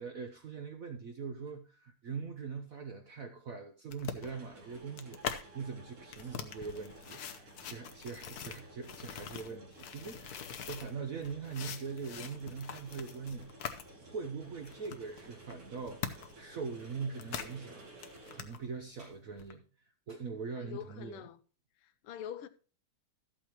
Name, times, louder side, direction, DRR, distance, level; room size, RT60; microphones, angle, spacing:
voice 1, 0.0-17.9 18.3-19.6 20.1-21.2, right 5 dB, 65° right, 0.9 m, -42 dB
sound 1, 1.5-1.6 4.1-18.4, right 2 dB, 80° right, 2.9 m, -55 dB
sound 2, 3.9-5.4 6.0-10.9 11.2-13.8 14.2-14.3 14.6-16.4 16.7-17.6 17.9-18.6 19.4-19.5, left 8 dB, 60° left, 1.1 m, -43 dB
sound 3, 6.2-19.2, right 1 dB, 25° right, 5.1 m, -69 dB
voice 2, 20.6-21.4 21.8-22.5, left 10 dB, 85° left, 1.6 m, -44 dB
13.5 x 8.5 x 3.0 m
omnidirectional pair, 2.4 m